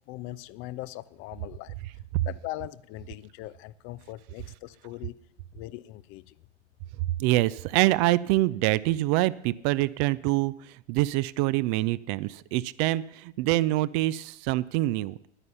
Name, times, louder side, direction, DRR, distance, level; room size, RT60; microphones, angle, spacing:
voice 1, 0.1-1.7 2.3-5.2 5.5-6.3, left 16 dB, 40° left, 0.5 m, -40 dB
voice 2, 7.2-15.3, right 17 dB, 40° right, 0.5 m, -25 dB
11.0 x 9.9 x 7.0 m
figure-of-eight pair, 85°, 33 cm